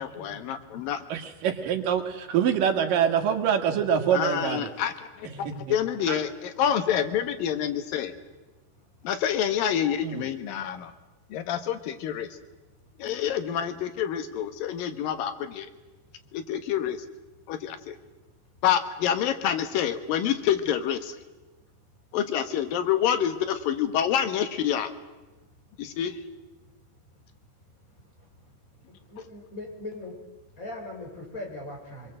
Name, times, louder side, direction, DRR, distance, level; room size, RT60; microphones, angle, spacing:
voice 1, 0.0-1.0 4.1-8.1 9.0-10.9 11.3-12.3 13.0-15.7 16.3-17.0 17.5-18.0 18.6-21.1 22.1-24.9 25.8-26.2, left 9 dB, 85° left, 10 dB, 3.0 m, -27 dB
voice 2, 1.1-4.7 5.2-5.8 6.1-6.2 10.0-10.3, right 8 dB, 80° right, 6 dB, 3.3 m, -25 dB
voice 3, 5.4-5.7 29.1-30.1 30.6-32.2, left 1 dB, 25° left, 1 dB, 4.6 m, -39 dB
25.0 x 21.5 x 7.7 m, 1.1 s
omnidirectional pair, 3.9 m